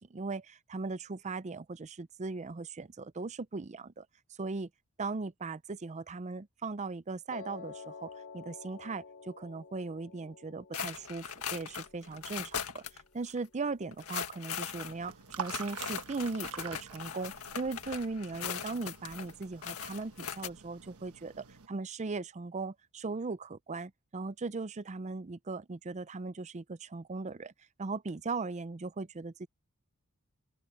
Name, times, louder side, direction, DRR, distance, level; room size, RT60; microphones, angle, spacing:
voice 1, 0.0-4.1 4.4-4.7 5.0-27.5 27.8-29.5, right 3 dB, 30° right, 0.5 m, -38 dB
Piano, 7.3-13.4, left 5 dB, 55° left, 1.1 m, -50 dB
sound 1, 10.7-13.0 13.3-13.4 13.9-20.5, left 7 dB, 75° left, 1.9 m, -40 dB
sound 2, 14.6-21.7, right 7 dB, 75° right, 1.2 m, -47 dB
open air
head